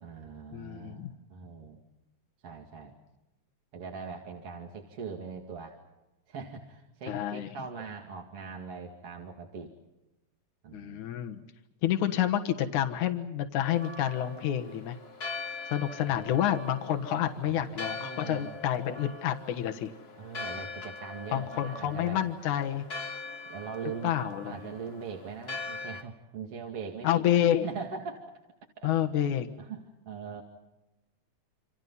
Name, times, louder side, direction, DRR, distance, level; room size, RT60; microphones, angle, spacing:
voice 1, 0.0-1.8 2.4-2.9 3.7-5.8 6.3-9.7 10.6-11.0 16.1-16.4 17.4-17.7 18.0-18.6 20.2-22.2 23.4-24.1 24.4-27.2 27.6-28.2 28.8-28.9 29.6-30.4, right 5 dB, 50° right, 1 dB, 3.1 m, -41 dB
voice 2, 0.5-1.1 7.1-7.5 10.7-11.4 11.8-15.0 15.7-19.9 21.3-22.9 24.0-24.6 27.0-27.7 28.8-29.5, left 11 dB, 80° left, 6 dB, 2.8 m, -29 dB
Church bell, 13.6-26.0, left 3 dB, 40° left, 0.8 m, -42 dB
28.0 x 27.0 x 5.6 m, 0.99 s
omnidirectional pair, 3.5 m